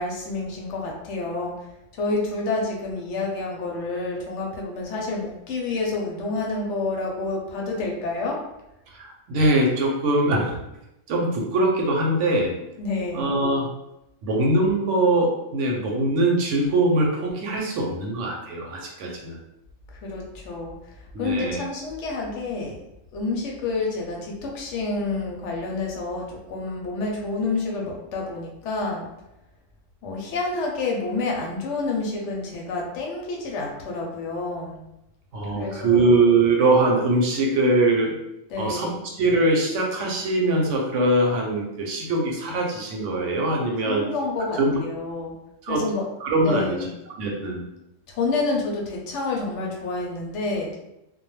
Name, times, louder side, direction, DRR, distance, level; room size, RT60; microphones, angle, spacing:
voice 1, 0.0-1.5 1.9-8.4 12.8-13.3 20.0-20.7 21.2-22.8 23.1-29.1 30.0-34.8 35.5-36.0 38.5-39.0 43.8-45.3 45.7-46.0 46.4-46.9 48.1-50.7, left 3 dB, 70° left, -1 dB, 0.8 m, -28 dB
voice 2, 8.9-10.6 11.1-12.6 13.1-13.7 14.2-19.4 21.1-21.6 35.3-38.1 38.6-44.1 44.6-44.7 45.6-45.8 46.2-46.8 47.2-47.6, right 2 dB, 70° right, 0 dB, 0.9 m, -22 dB
2.2 x 2.1 x 3.0 m, 0.87 s
omnidirectional pair, 1.3 m